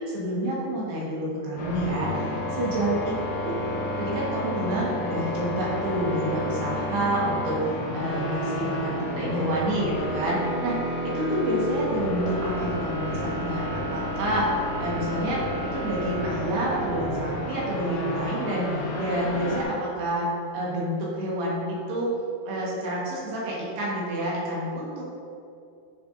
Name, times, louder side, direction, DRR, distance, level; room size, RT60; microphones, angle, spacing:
voice 1, 0.1-3.1 3.4-10.8 11.0-22.1 22.4-25.0, right 1 dB, 65° right, -6 dB, 3.3 m, -28 dB
sound 1, 1.6-19.6, left 1 dB, 80° left, 1.7 m, -30 dB
11.0 x 6.9 x 2.6 m, 2.5 s
omnidirectional pair, 5.3 m